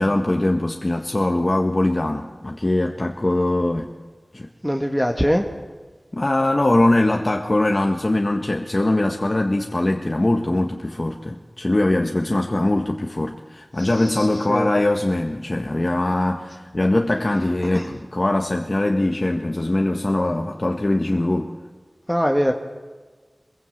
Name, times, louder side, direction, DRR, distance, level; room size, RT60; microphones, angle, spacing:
voice 1, 0.0-3.9 4.3-4.5 6.1-21.5, left 1 dB, 40° left, 2 dB, 1.7 m, -21 dB
voice 2, 4.6-5.5 13.8-14.7 17.6-17.9 22.1-22.5, equal, ahead, 3 dB, 1.9 m, -22 dB
25.0 x 22.0 x 8.2 m, 1.4 s
wide cardioid pair, 65°, 0 cm